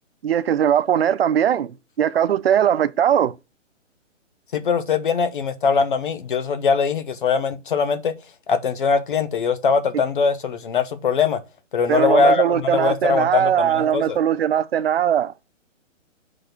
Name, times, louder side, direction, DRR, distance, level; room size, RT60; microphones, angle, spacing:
voice 1, 0.2-3.3 11.9-15.3, right 9 dB, 50° right, 0.5 m, -20 dB
voice 2, 4.5-8.1 8.5-11.4 11.7-14.2, left 5 dB, 40° left, 0.8 m, -21 dB
5.0 x 3.9 x 5.9 m
hypercardioid pair, 175°, 38 cm